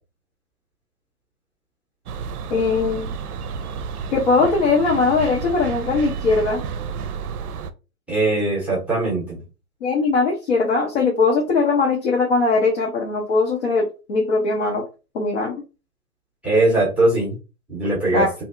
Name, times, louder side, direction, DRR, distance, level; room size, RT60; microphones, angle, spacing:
sound 1, 2.1-7.7, right 6 dB, 70° right, 0.5 m, -31 dB
voice 1, 2.5-3.1 4.1-6.6 9.8-14.8 15.1-15.6 18.1-18.3, left 4 dB, 45° left, -1 dB, 0.9 m, -20 dB
voice 2, 8.1-9.4 16.4-17.3 17.7-18.3, right 2 dB, 5° right, -6 dB, 0.8 m, -20 dB
2.8 x 2.6 x 2.5 m, 0.30 s
hypercardioid pair, 135°, 46 cm